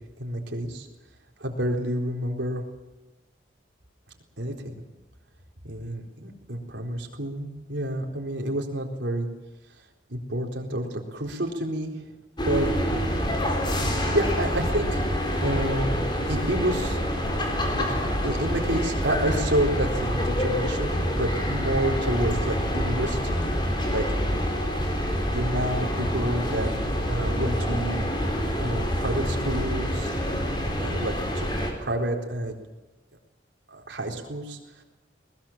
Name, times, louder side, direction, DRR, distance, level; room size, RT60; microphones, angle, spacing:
voice 1, 0.2-0.9 1.4-2.6 4.4-4.8 5.6-9.3 10.1-12.1 12.4-12.7 13.8-15.0 15.4-16.0 16.3-17.0 17.7-17.9 18.2-23.4 23.9-24.1 25.3-26.7 27.1-28.0 28.6-30.1 30.8-31.5 31.8-32.5 33.7-34.8, right 1 dB, 70° right, 1 dB, 4.1 m, -29 dB
sound 1, 12.4-31.7, equal, 25° left, 4.3 m, -26 dB
22.0 x 20.5 x 7.4 m, 1.1 s
head